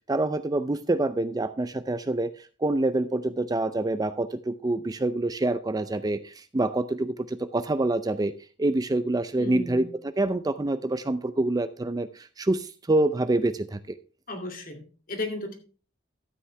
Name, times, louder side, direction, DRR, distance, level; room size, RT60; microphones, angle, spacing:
voice 1, 0.1-8.3 8.6-14.0, right 2 dB, 20° right, 11 dB, 0.4 m, -26 dB
voice 2, 9.4-9.9 14.3-15.6, left 2 dB, 45° left, 4 dB, 2.3 m, -34 dB
13.0 x 8.4 x 3.3 m, 0.37 s
head